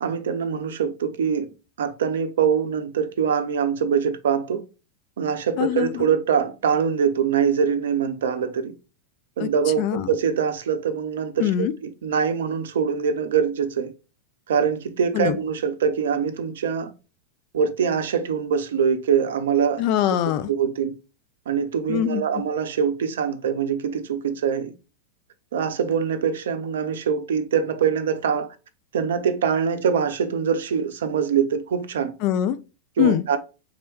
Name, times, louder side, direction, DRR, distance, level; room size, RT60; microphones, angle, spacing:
voice 1, 0.0-1.5 1.8-4.7 5.2-8.7 9.4-13.9 14.5-16.9 17.5-19.8 20.5-21.0 21.5-24.7 25.5-28.5 28.9-32.1 33.0-33.4, right 7 dB, 60° right, 0.5 m, -23 dB
voice 2, 5.6-6.1 9.4-9.5 9.8-10.1 11.4-11.7 15.1-15.4 19.8-20.5 21.9-22.2 32.2-32.6 33.0-33.2, left 11 dB, 45° left, 0.4 m, -22 dB
3.9 x 3.1 x 4.4 m
figure-of-eight pair, 90°, 0 cm